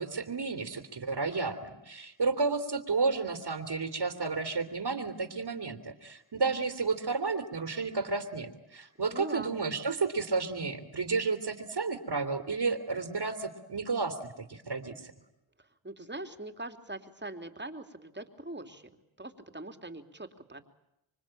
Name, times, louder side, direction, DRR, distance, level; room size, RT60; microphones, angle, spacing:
voice 1, 0.0-15.1, right 4 dB, 50° right, 7 dB, 3.1 m, -32 dB
voice 2, 9.1-9.5 15.6-20.7, right 2 dB, 20° right, 7 dB, 3.3 m, -42 dB
26.5 x 24.5 x 9.0 m, 0.87 s
cardioid pair, 50°, 49 cm